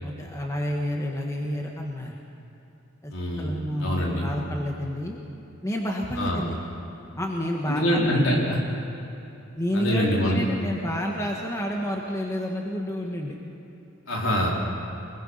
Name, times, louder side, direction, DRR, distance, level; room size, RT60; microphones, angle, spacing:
voice 1, 0.0-2.2 3.0-3.1 3.4-5.2 5.6-6.6 7.2-8.0 9.6-13.4, equal, 15° left, 0 dB, 1.5 m, -29 dB
voice 2, 3.1-3.5 3.8-4.2 6.2-6.4 7.7-8.6 9.7-10.4 14.1-14.5, equal, 65° left, -3 dB, 4.5 m, -24 dB
25.0 x 21.5 x 5.7 m, 2.9 s
head